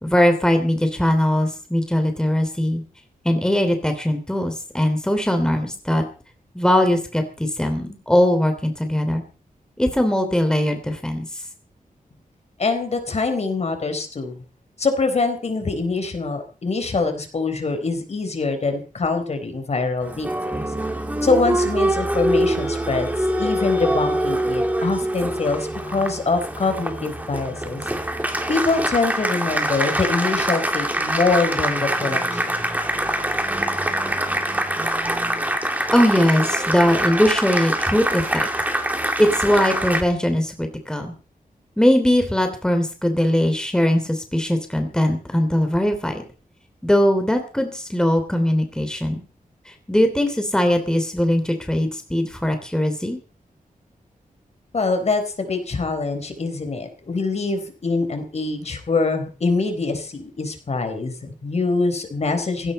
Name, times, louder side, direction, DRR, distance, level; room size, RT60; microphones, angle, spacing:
voice 1, 0.0-2.8 3.2-6.0 6.5-9.2 9.8-11.3 35.9-38.5 39.2-41.1 41.8-46.2 46.8-49.2 49.7-53.2, left 1 dB, 5° left, 6 dB, 3.1 m, -20 dB
voice 2, 12.6-14.4 14.8-20.3 21.2-23.1 23.4-27.8 28.5-32.4 54.7-62.7, left 3 dB, 50° left, 7 dB, 4.1 m, -24 dB
Applause, 20.0-40.0, right 1 dB, 10° right, 2.7 m, -24 dB
19.0 x 17.0 x 4.3 m, 0.36 s
wide cardioid pair, 170°, 15 cm